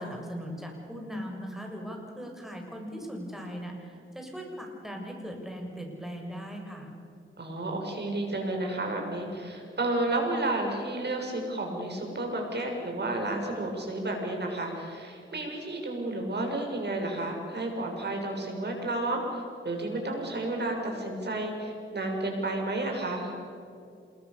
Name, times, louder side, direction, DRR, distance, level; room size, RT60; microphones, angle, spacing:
voice 1, 0.0-6.9, equal, ahead, 1 dB, 7.2 m, -39 dB
voice 2, 7.4-23.3, right 2 dB, 55° right, 2 dB, 7.3 m, -31 dB
27.5 x 22.0 x 7.1 m, 2.4 s
cardioid pair, 65°, 21 cm